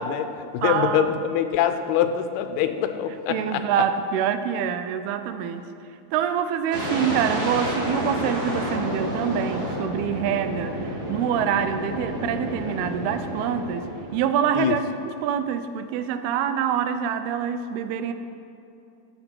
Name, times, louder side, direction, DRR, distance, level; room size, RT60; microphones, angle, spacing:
voice 1, 0.0-3.6 14.6-14.8, left 9 dB, 90° left, 9 dB, 2.6 m, -24 dB
voice 2, 0.6-1.1 3.3-5.7 6.1-14.8 15.2-18.1, right 8 dB, 85° right, 9 dB, 2.6 m, -26 dB
sound 1, 6.7-14.6, equal, 45° right, 3.1 m, -30 dB
13.5 x 7.8 x 4.5 m, 2.7 s
omnidirectional pair, 4.4 m